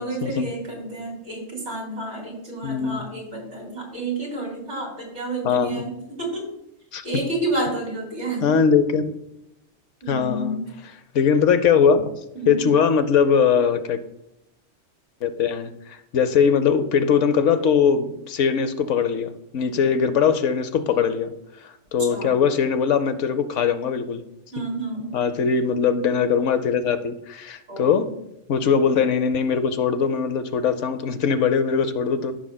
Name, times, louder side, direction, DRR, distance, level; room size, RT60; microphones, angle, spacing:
voice 1, 0.0-6.5 7.0-8.6 10.0-10.7 12.3-12.7 22.0-22.5 24.5-25.1 27.7-28.0, right 2 dB, 60° right, -1 dB, 3.0 m, -30 dB
voice 2, 2.6-3.0 5.4-5.8 6.9-7.0 8.4-9.0 10.1-10.6 11.1-12.0 12.5-14.0 15.2-21.3 21.6-24.2 24.6-24.7 25.1-28.1 28.5-32.3, left 6 dB, 75° left, 10 dB, 1.0 m, -21 dB
14.0 x 6.2 x 2.2 m, 0.84 s
omnidirectional pair, 1.3 m